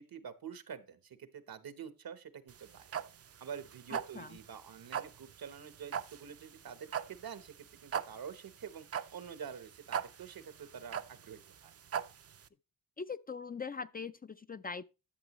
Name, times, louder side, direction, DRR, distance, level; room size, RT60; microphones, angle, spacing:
voice 1, 0.0-2.9 3.4-11.7, right 7 dB, 80° right, 1.0 m, -47 dB
sound 1, 2.5-12.5, right 8 dB, 45° right, 0.5 m, -40 dB
voice 2, 13.0-14.8, left 5 dB, 25° left, 0.4 m, -41 dB
11.5 x 7.1 x 3.0 m
cardioid pair, 75°, 35 cm